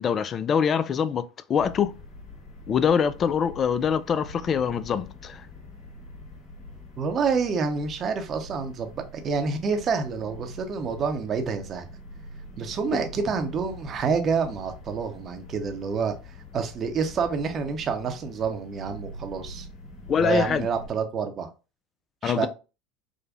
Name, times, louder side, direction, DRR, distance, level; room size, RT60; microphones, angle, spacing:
voice 1, 0.0-1.9 2.7-5.4 20.1-20.7 22.2-22.5, left 7 dB, 35° left, 0.3 m, -24 dB
sound 1, 1.6-20.9, left 1 dB, 55° left, 1.9 m, -44 dB
voice 2, 7.0-11.9 12.6-16.1 16.5-19.7 20.1-21.5 22.2-22.5, right 5 dB, 40° right, 0.8 m, -28 dB
5.0 x 2.2 x 2.5 m
hypercardioid pair, 85°, 0 cm